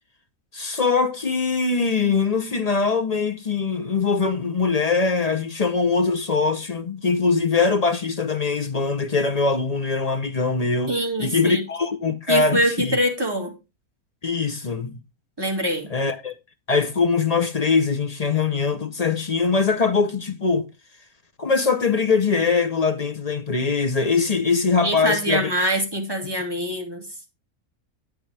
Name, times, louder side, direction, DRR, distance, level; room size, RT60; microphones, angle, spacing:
voice 1, 0.5-13.0 14.2-15.0 15.9-16.3 16.7-20.7 21.4-25.5, left 4 dB, 40° left, 0.6 m, -22 dB
voice 2, 10.9-11.6 12.3-13.5 15.4-15.9 24.8-27.0, equal, 15° right, 2.1 m, -24 dB
9.1 x 8.9 x 3.3 m
omnidirectional pair, 1.6 m